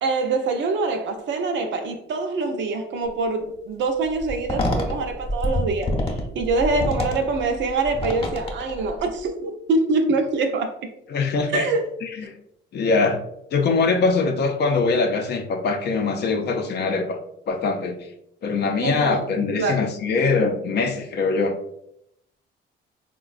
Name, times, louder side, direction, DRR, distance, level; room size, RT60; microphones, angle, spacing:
voice 1, 0.0-10.7 11.5-11.9 18.8-19.2 19.6-19.8, right 3 dB, 70° right, 0.5 m, -24 dB
sound 1, 4.2-9.2, left 1 dB, 30° left, 0.8 m, -27 dB
voice 2, 11.1-11.7 12.0-12.3 12.7-13.2 13.5-17.2 17.5-18.0 18.4-21.6, left 4 dB, 55° left, 0.5 m, -22 dB
3.8 x 2.2 x 2.4 m
cardioid pair, 90°, 20 cm